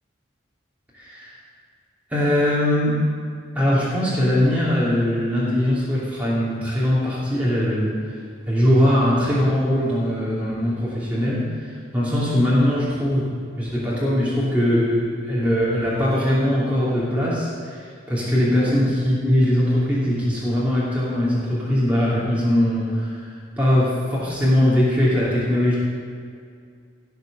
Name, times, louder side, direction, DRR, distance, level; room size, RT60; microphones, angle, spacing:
voice 1, 0.9-1.3 2.1-3.0 3.5-8.0 8.5-13.3 13.6-25.8, left 1 dB, 5° right, -9 dB, 2.9 m, -21 dB
16.5 x 6.7 x 6.8 m, 2.2 s
head